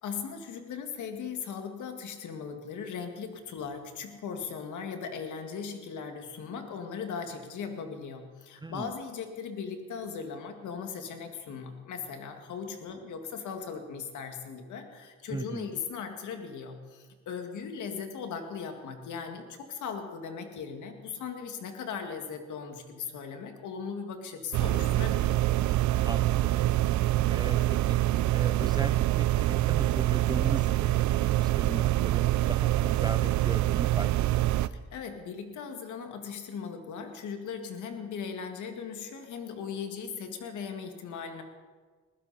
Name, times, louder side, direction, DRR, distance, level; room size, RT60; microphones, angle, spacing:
voice 1, 0.0-25.5 34.6-41.4, left 6 dB, 75° left, 5 dB, 2.1 m, -38 dB
voice 2, 15.3-15.7 26.1-26.5 27.3-28.0 28.3-31.0 31.4-34.1, right 3 dB, 15° right, 13 dB, 0.5 m, -38 dB
sound 1, 24.5-34.7, right 15 dB, 70° right, 0.5 m, -25 dB
20.5 x 15.0 x 4.2 m, 1.5 s
cardioid pair, 90°, 30 cm